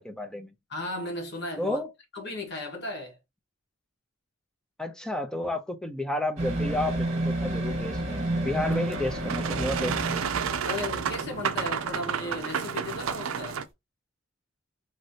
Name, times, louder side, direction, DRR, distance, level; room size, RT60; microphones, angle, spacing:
voice 1, 0.0-0.5 1.6-1.9 4.8-10.5, left 1 dB, 5° left, 0.5 m, -32 dB
voice 2, 0.7-1.8 2.1-3.2 10.6-13.6, left 2 dB, 55° left, 1.4 m, -35 dB
sound 1, 6.4-11.4 11.7-11.8, right 1 dB, 30° right, 1.2 m, -30 dB
Boat Water vehicle, 8.6-13.6, right 7 dB, 80° right, 0.4 m, -31 dB
3.2 x 2.7 x 2.7 m
head